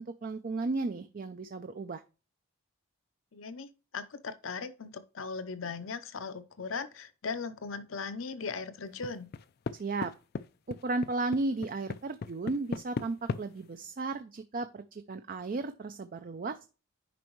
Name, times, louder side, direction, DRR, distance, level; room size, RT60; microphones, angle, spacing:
voice 1, 0.0-2.0 9.8-10.1 10.7-16.6, right 3 dB, 40° right, 0.4 m, -34 dB
voice 2, 3.3-9.3, left 4 dB, 75° left, 0.8 m, -38 dB
sound 1, 9.0-9.8 10.0-10.4 10.7-13.4, left 4 dB, 50° left, 0.4 m, -35 dB
9.2 x 5.3 x 3.1 m
head